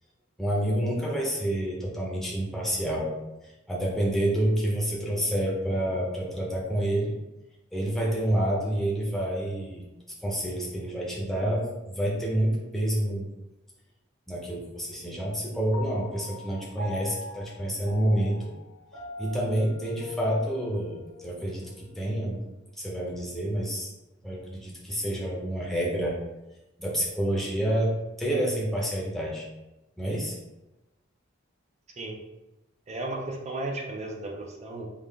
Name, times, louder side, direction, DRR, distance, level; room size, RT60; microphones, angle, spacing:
voice 1, 0.4-3.1 3.4-7.1 7.7-9.9 10.2-13.3 14.3-18.5 19.2-22.4 22.8-23.9 24.2-26.2 26.8-29.5 30.0-30.4, right 1 dB, ahead, -4 dB, 0.7 m, -28 dB
Piano, 15.7-22.4, left 2 dB, 80° left, 1.4 m, -43 dB
voice 2, 32.9-34.9, right 2 dB, 35° right, 1 dB, 0.4 m, -34 dB
3.8 x 2.4 x 3.4 m, 0.99 s
head